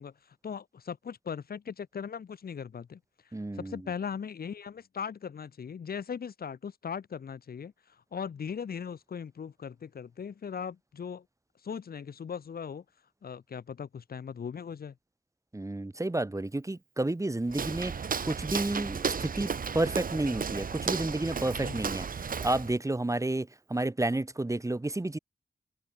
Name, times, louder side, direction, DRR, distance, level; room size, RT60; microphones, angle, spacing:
voice 1, 0.0-3.0 3.2-11.2 11.6-12.8 13.2-15.0 21.6-21.8, left 7 dB, 90° left, 3.1 m, -39 dB
voice 2, 3.3-3.8 15.5-19.5 19.7-25.2, right 2 dB, 20° right, 1.4 m, -31 dB
Walk footsteps, 17.5-22.8, right 6 dB, 70° right, 1.4 m, -34 dB
cardioid pair, 65°, 15 cm